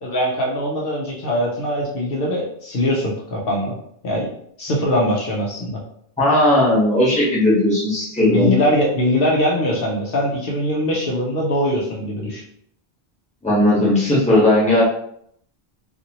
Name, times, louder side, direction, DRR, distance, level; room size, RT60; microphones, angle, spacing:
voice 1, 0.0-3.8 4.0-4.3 4.6-5.8 8.2-12.4, equal, 65° left, -3 dB, 0.8 m, -22 dB
voice 2, 6.2-8.5 13.4-14.8, left 1 dB, 5° left, -7 dB, 1.0 m, -16 dB
2.7 x 2.5 x 2.8 m, 0.69 s
omnidirectional pair, 1.0 m